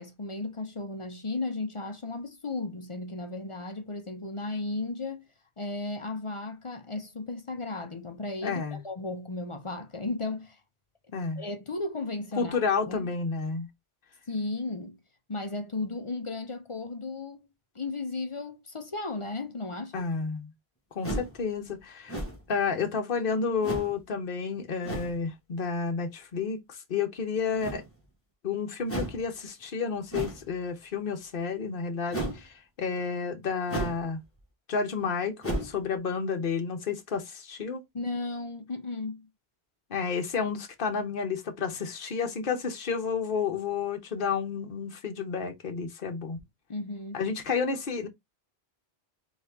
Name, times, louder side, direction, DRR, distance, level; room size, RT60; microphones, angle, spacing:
voice 1, 0.0-5.3 5.6-10.6 11.4-12.6 12.9-13.1 14.3-15.0 15.3-17.5 17.7-20.0 37.9-39.3 46.7-47.2, left 3 dB, 35° left, 0.6 m, -35 dB
voice 2, 8.4-8.8 11.1-11.4 12.4-13.7 19.9-20.5 20.9-22.2 22.5-27.8 28.4-34.2 34.7-37.8 39.9-46.4 47.1-48.1, left 5 dB, 60° left, 1.1 m, -31 dB
sound 1, 21.0-21.4 22.1-22.5 23.6-24.0 24.8-25.2 27.6-28.0 28.9-29.2 30.1-30.5 32.1-32.4 33.7-34.1 34.4-34.5 35.4-35.8, right 1 dB, 15° left, 1.6 m, -33 dB
4.1 x 3.2 x 3.4 m
omnidirectional pair, 1.1 m